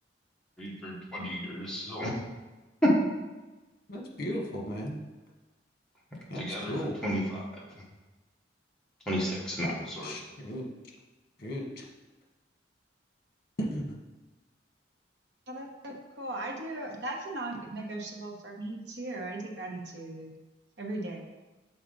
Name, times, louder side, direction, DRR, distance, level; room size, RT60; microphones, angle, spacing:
voice 1, 0.6-2.1 2.8-2.9 6.3-6.7 7.0-7.6 9.1-10.2, equal, 5° left, -6 dB, 1.3 m, -31 dB
voice 2, 3.9-5.0 6.3-7.0 10.0-10.7 11.4-11.8 13.6-14.0, equal, 50° left, 0 dB, 1.2 m, -35 dB
voice 3, 15.5-20.3 20.8-21.2, right 2 dB, 65° right, 0 dB, 1.0 m, -38 dB
6.9 x 4.2 x 3.9 m, 1.2 s
head